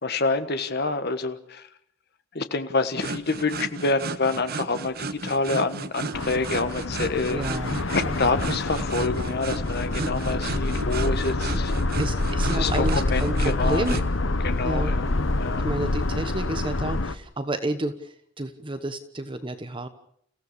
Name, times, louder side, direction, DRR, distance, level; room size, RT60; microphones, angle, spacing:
voice 1, 0.0-1.7 2.3-7.4 7.9-11.8 12.5-14.0 14.4-15.7, left 3 dB, 55° left, 9 dB, 1.5 m, -27 dB
sound 1, 3.0-14.1, right 3 dB, 50° right, 1.1 m, -34 dB
sound 2, 6.1-17.1, left 2 dB, 75° left, 1.1 m, -26 dB
voice 2, 7.3-7.8 8.0-8.1 12.0-14.0 14.6-14.9 15.6-19.9, right 1 dB, 25° right, 9 dB, 1.2 m, -30 dB
30.0 x 16.0 x 6.9 m, 0.69 s
head